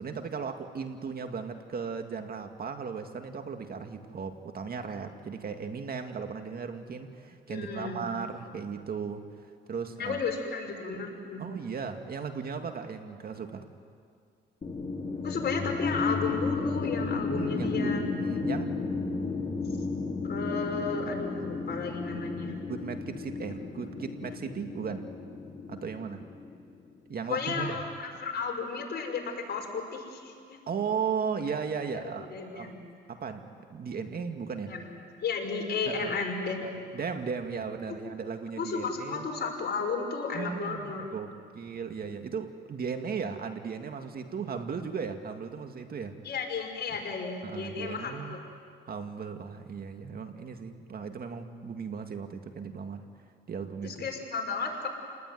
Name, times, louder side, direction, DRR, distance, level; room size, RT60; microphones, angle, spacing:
voice 1, 0.0-9.2 9.7-10.2 11.4-13.6 17.3-18.7 22.7-25.1 25.7-26.2 27.1-27.8 30.7-32.3 32.5-32.8 33.1-33.4 33.7-34.7 35.9-36.1 36.9-39.3 40.3-46.2 46.9-47.0 47.4-48.4 48.8-53.0 53.5-54.0, right 6 dB, 50° right, 6 dB, 2.2 m, -36 dB
voice 2, 7.5-8.0 10.0-11.4 15.2-18.0 20.2-22.5 27.3-30.6 31.9-32.0 32.3-32.9 34.7-34.8 35.2-36.8 38.6-41.1 46.2-48.4 53.8-54.9, left 4 dB, 55° left, 1 dB, 5.7 m, -33 dB
sound 1, 14.6-26.7, left 4 dB, 35° left, 5.0 m, -33 dB
30.0 x 20.0 x 9.4 m, 2.2 s
cardioid pair, 90°, 20 cm